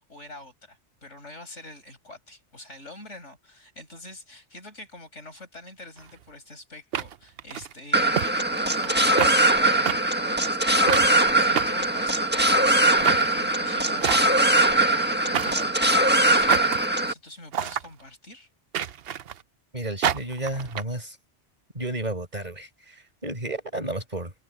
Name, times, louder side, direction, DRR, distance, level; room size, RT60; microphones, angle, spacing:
voice 1, 0.1-18.5, left 2 dB, 90° left, 7.2 m, -45 dB
sound 1, 6.0-6.1 6.9-7.7 8.2-8.3 8.6-8.9 9.2-9.3 9.9-10.0 10.9-11.1 11.6-12.4 13.0-13.3 14.0-14.5 15.3-15.7 16.5-16.9 17.5-17.9 18.7-19.4 20.0-20.8, right 9 dB, 60° right, 0.9 m, -28 dB
sound 2, 7.9-17.1, right 1 dB, 10° right, 1.5 m, -21 dB
voice 2, 19.7-21.2 21.7-24.3, right 1 dB, 35° right, 5.8 m, -32 dB
omnidirectional pair, 1.2 m